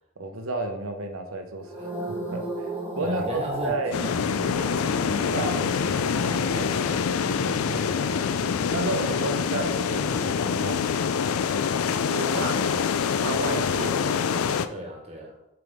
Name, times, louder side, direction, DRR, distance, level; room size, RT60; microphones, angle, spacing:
voice 1, 0.2-2.7 3.0-4.0 5.3-5.6 6.3-7.0 7.4-8.2 8.7-10.9 12.0-12.6 13.2-14.5, right 2 dB, 80° right, 5 dB, 0.8 m, -32 dB
sound 1, 1.6-10.0 10.2-10.6, right 1 dB, 10° right, 1.6 m, -37 dB
voice 2, 3.0-4.7 5.1-6.3 6.5-6.9 12.2-12.8 14.7-15.4, right 1 dB, 30° right, 1 dB, 1.3 m, -37 dB
sound 2, 3.9-14.7, left 6 dB, 85° left, 0.4 m, -25 dB
sound 3, 4.0-10.7, equal, 25° left, 1.3 m, -40 dB
7.6 x 4.9 x 3.5 m, 0.89 s
head